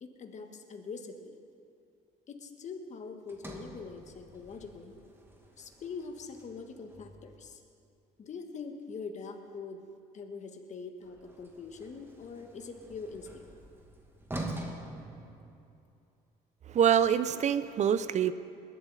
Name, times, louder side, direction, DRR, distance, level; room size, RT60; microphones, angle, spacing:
voice 1, 0.0-1.3 2.3-5.0 5.6-7.6 8.2-9.8 10.1-13.4, left 4 dB, 45° left, 5 dB, 1.5 m, -43 dB
Sliding door, 3.3-7.6 11.0-16.0, right 1 dB, 15° right, 1.7 m, -45 dB
voice 2, 16.7-18.3, right 9 dB, 45° right, 14 dB, 0.6 m, -25 dB
20.5 x 11.5 x 4.1 m, 2.6 s
cardioid pair, 110°, 17 cm